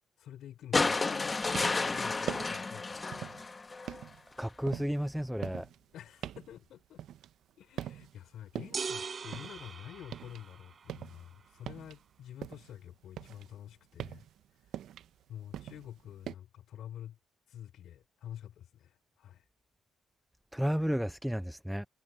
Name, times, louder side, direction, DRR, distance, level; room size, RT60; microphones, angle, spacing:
voice 1, 0.2-3.5 5.9-7.0 7.6-14.2 15.3-17.2 17.5-19.4, left 11 dB, 75° left, 4.9 m, -48 dB
sound 1, 0.7-4.0 5.4-5.5, left 3 dB, 25° left, 1.3 m, -31 dB
sound 2, 1.3-1.9 2.2-2.7 3.1-3.5 3.9-7.5 7.8-8.2 8.6-10.4 10.7-12.8 13.1-16.4, right 11 dB, 75° right, 0.8 m, -43 dB
voice 2, 4.4-5.7 20.5-21.9, equal, ahead, 0.6 m, -32 dB
sound 3, 8.7-10.8, right 5 dB, 40° right, 4.1 m, -40 dB
cardioid pair, 90°, 0 cm